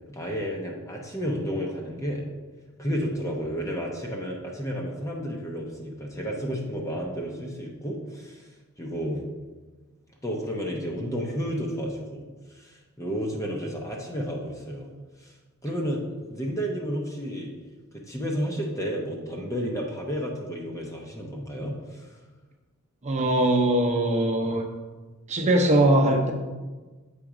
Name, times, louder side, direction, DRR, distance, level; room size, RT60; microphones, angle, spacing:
voice 1, 0.1-2.3 2.8-8.5 8.8-9.2 10.2-12.2 12.5-14.9 15.2-15.3 15.6-17.5 18.1-22.1, equal, 15° left, -1 dB, 0.7 m, -31 dB
voice 2, 23.0-24.6 25.3-26.3, right 1 dB, 30° right, 1 dB, 0.8 m, -21 dB
7.2 x 3.8 x 4.9 m, 1.3 s
head